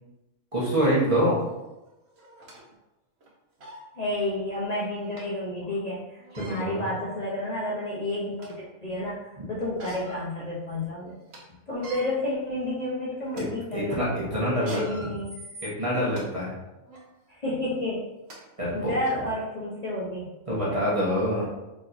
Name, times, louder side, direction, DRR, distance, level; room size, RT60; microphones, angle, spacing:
voice 1, 0.5-1.4 6.4-6.8 9.4-9.5 13.3-13.5 13.7-15.2 15.6-16.5 18.6-18.9 20.5-21.4, equal, 30° right, -7 dB, 1.1 m, -26 dB
sound 1, 1.4-1.5 2.2-2.6 3.2-3.3 3.6-3.8 5.2-5.3 6.2-6.6 7.4-7.5 8.0-8.7 9.6-10.2 10.7-10.8 11.1-11.4 11.7-12.0 12.7-12.9 13.3-13.4 14.5-16.2 16.9-17.1 17.9-18.0 18.3-18.4 19.0-19.1, right 1 dB, 60° right, 1.1 m, -44 dB
voice 2, 4.0-11.1 11.7-14.1 14.4-15.3 17.3-18.0 18.7-20.3, left 1 dB, 40° left, -8 dB, 0.7 m, -31 dB
4.3 x 3.0 x 2.5 m, 1.0 s
omnidirectional pair, 1.3 m